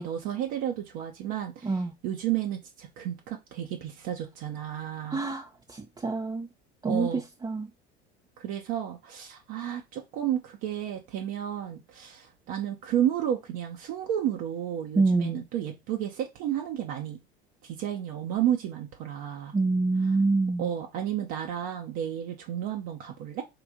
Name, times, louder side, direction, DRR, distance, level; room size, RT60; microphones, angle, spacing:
voice 1, 0.0-1.8 2.0-5.2 6.9-7.2 8.4-17.2 17.6-19.5 20.6-23.4, right 10 dB, 60° right, 0.9 m, -32 dB
voice 2, 1.6-1.9 5.1-6.5 6.8-7.7 14.9-15.4 19.5-20.7, right 3 dB, 15° right, 0.5 m, -26 dB
4.9 x 2.6 x 3.7 m
hypercardioid pair, 75°, 31 cm